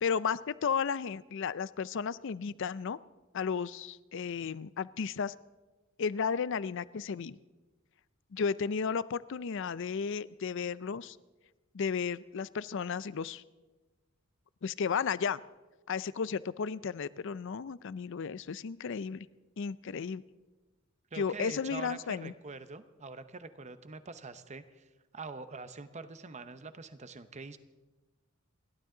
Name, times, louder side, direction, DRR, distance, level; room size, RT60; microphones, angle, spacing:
voice 1, 0.0-3.0 3.3-5.3 6.0-7.4 8.3-11.2 11.7-13.4 14.6-15.4 15.9-19.3 19.6-20.2 21.2-22.3, left 6 dB, 65° left, 18 dB, 0.5 m, -33 dB
voice 2, 21.1-27.6, right 4 dB, 35° right, 11 dB, 0.8 m, -45 dB
30.0 x 12.0 x 3.9 m, 1.2 s
head